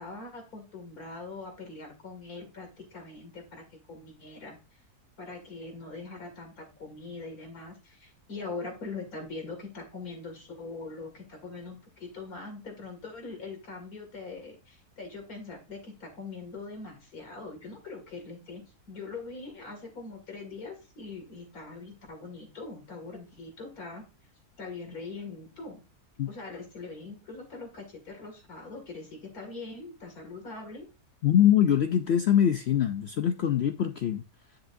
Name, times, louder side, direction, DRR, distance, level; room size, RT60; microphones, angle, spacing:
voice 1, 0.0-4.8 5.2-18.6 18.9-24.0 24.6-25.8 26.3-30.9, left 3 dB, 60° left, 2.8 m, -42 dB
voice 2, 31.2-34.2, left 10 dB, 80° left, 0.5 m, -23 dB
10.0 x 5.9 x 2.6 m
omnidirectional pair, 1.7 m